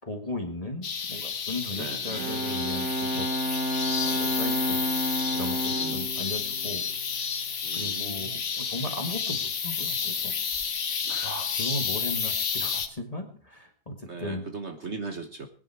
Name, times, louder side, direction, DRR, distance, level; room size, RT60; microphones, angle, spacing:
voice 1, 0.0-3.3 3.8-6.9 7.2-7.3 7.7-10.3 11.2-14.5, left 2 dB, 25° left, 5 dB, 1.9 m, -37 dB
sound 1, 0.8-12.9, left 6 dB, 50° left, 1.4 m, -30 dB
Bowed string instrument, 2.0-7.6, equal, 65° right, 1.6 m, -31 dB
voice 2, 5.7-6.1 7.6-8.4 11.0-11.4 14.0-15.5, right 4 dB, 45° right, 6 dB, 1.5 m, -39 dB
19.5 x 10.5 x 4.8 m, 0.42 s
omnidirectional pair, 1.7 m